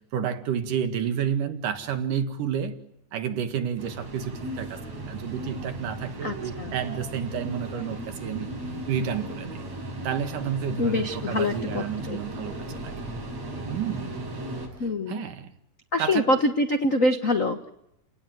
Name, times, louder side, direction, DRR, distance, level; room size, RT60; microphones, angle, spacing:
voice 1, 0.1-2.8 3.1-8.5 8.9-9.6 10.0-12.9 13.7-14.2 15.1-15.5 16.0-16.4, right 8 dB, 90° right, 3.4 m, -30 dB
sound 1, 3.8-14.7, right 1 dB, 55° right, 8.2 m, -36 dB
voice 2, 6.2-6.7 10.8-12.2 14.8-15.3 15.9-17.7, left 2 dB, 70° left, 0.7 m, -25 dB
30.0 x 18.0 x 9.3 m
omnidirectional pair, 3.6 m